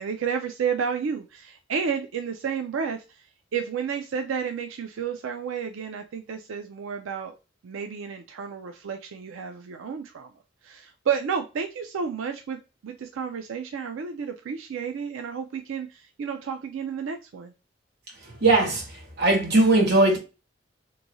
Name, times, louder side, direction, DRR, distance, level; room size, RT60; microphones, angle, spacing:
voice 1, 0.0-7.4 7.6-10.3 10.6-17.5, right 6 dB, 90° right, 0.4 m, -31 dB
voice 2, 18.3-20.2, right 2 dB, 55° right, 1.0 m, -20 dB
3.0 x 2.6 x 2.6 m
head